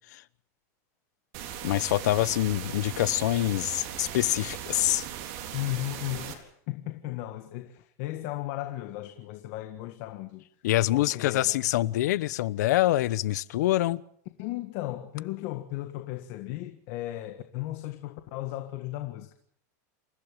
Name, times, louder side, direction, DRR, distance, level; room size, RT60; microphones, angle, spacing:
sound 1, 1.3-6.3, right 10 dB, 50° right, 3.9 m, -38 dB
voice 1, 1.6-5.1 10.6-14.0, left 15 dB, 80° left, 0.9 m, -25 dB
voice 2, 5.5-10.4 10.9-11.6 14.4-19.3, left 16 dB, 50° left, 1.7 m, -35 dB
28.0 x 15.0 x 7.5 m
supercardioid pair, 165°, 9 cm